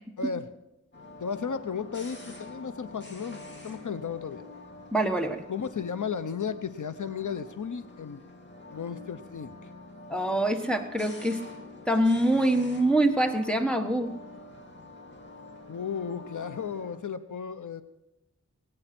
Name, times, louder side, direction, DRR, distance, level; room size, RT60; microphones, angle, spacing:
voice 1, 0.2-0.5 1.2-4.5 5.5-8.2 8.7-9.5 15.7-17.8, left 6 dB, 80° left, 12 dB, 0.8 m, -34 dB
sound 1, 0.9-17.0, left 2 dB, 40° left, 2.8 m, -46 dB
voice 2, 4.9-5.4 10.1-11.4 11.9-14.1, right 1 dB, 5° left, 3 dB, 1.3 m, -25 dB
21.5 x 9.0 x 6.0 m, 0.90 s
wide cardioid pair, 80°, 30 cm